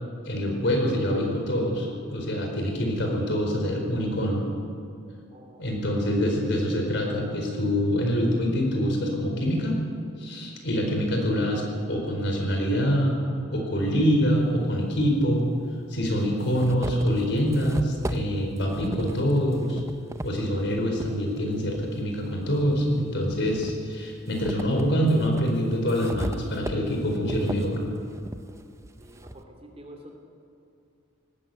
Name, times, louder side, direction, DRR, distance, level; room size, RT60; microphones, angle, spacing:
voice 1, 0.2-4.4 5.6-9.8 10.2-13.2 13.5-15.4 15.9-19.8 20.2-27.8, equal, 60° left, 1 dB, 4.7 m, -25 dB
voice 2, 5.3-5.8 29.0-30.2, right 1 dB, 30° right, 2 dB, 3.0 m, -48 dB
sound 1, 14.3-14.4 15.4-15.5 16.0-21.1 21.7-22.9 23.3-29.4, right 1 dB, 15° right, 0.7 m, -37 dB
19.0 x 16.0 x 9.3 m, 2.6 s
head